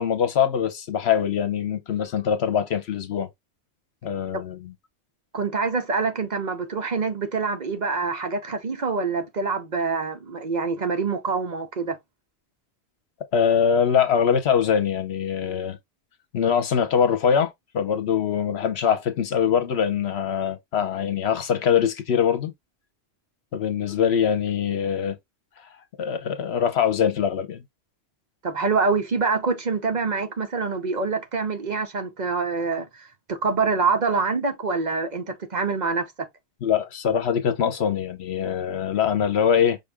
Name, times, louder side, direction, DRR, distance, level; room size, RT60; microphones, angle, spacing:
voice 1, 0.0-3.3 4.0-4.7 13.3-15.8 16.3-22.5 23.5-25.2 26.0-27.6 36.6-39.8, left 8 dB, 75° left, 1.1 m, -23 dB
voice 2, 5.3-12.0 28.4-36.0, right 4 dB, 45° right, 0.8 m, -25 dB
5.4 x 2.6 x 3.3 m
omnidirectional pair, 1.1 m